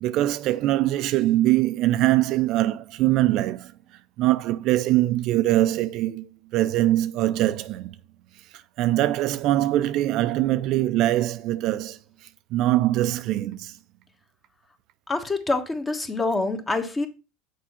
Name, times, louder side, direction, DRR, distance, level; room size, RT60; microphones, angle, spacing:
voice 1, 0.0-3.7 4.2-6.3 6.5-7.9 8.8-12.0 12.5-13.7, right 15 dB, 55° right, 0.5 m, -22 dB
voice 2, 15.1-17.1, left 3 dB, 20° left, 1.4 m, -26 dB
6.5 x 4.7 x 5.6 m
hypercardioid pair, 85°, 0 cm